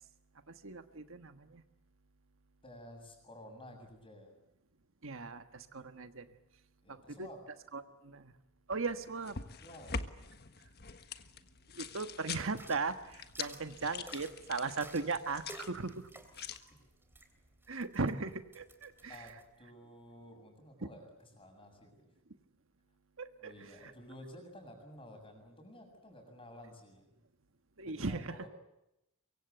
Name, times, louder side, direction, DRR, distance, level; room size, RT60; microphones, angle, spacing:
voice 1, 0.5-1.6 5.0-6.3 6.9-7.3 7.7-8.3 8.7-9.4 11.7-16.1 17.7-19.3 20.8-20.9 23.2-23.5 27.8-28.3, right 4 dB, 65° right, 9 dB, 1.4 m, -38 dB
voice 2, 2.6-4.4 6.8-7.4 9.6-9.9 19.1-22.0 23.4-27.1 27.9-28.5, left 1 dB, 25° left, 4 dB, 7.3 m, -52 dB
sound 1, 8.9-16.6, left 5 dB, 50° left, 1.5 m, -45 dB
sound 2, 12.5-19.4, right 2 dB, 10° right, 3.3 m, -55 dB
24.5 x 24.0 x 8.1 m, 0.88 s
head